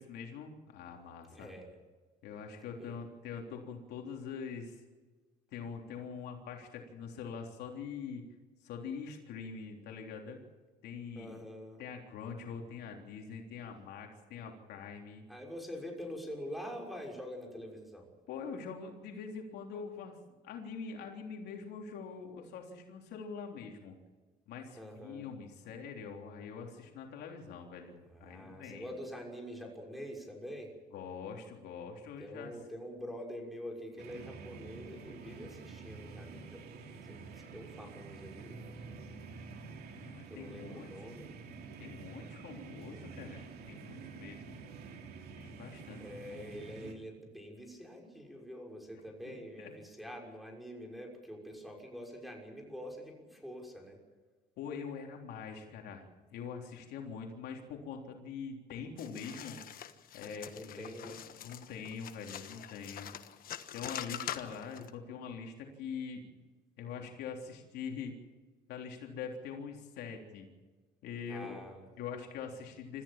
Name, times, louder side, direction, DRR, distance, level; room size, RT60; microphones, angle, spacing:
voice 1, 0.0-1.5 2.2-4.8 5.5-8.2 8.6-10.4 10.8-11.3 11.8-15.2 18.3-20.2 20.4-24.0 24.5-28.9 30.9-32.6 39.9-41.1 41.8-44.6 45.3-46.0 49.6-49.7 54.6-59.6 60.1-60.9 61.4-63.1 63.7-66.4 66.8-68.1 68.7-70.5 71.0-71.6 72.0-73.0, left 6 dB, 80° left, 2 dB, 3.6 m, -44 dB
voice 2, 1.3-1.8 2.8-2.9 11.1-11.8 15.3-18.1 24.7-25.3 28.1-30.7 32.2-38.6 40.3-41.3 43.9-44.1 45.6-45.7 46.0-54.0 60.2-61.2 63.0-63.1 71.3-71.9, equal, ahead, 1 dB, 6.0 m, -46 dB
sound 1, 34.0-46.9, right 4 dB, 70° right, 3.0 m, -48 dB
sound 2, 59.0-64.9, left 10 dB, 60° left, 1.4 m, -44 dB
26.0 x 14.5 x 7.5 m, 1.3 s
cardioid pair, 110°, 17 cm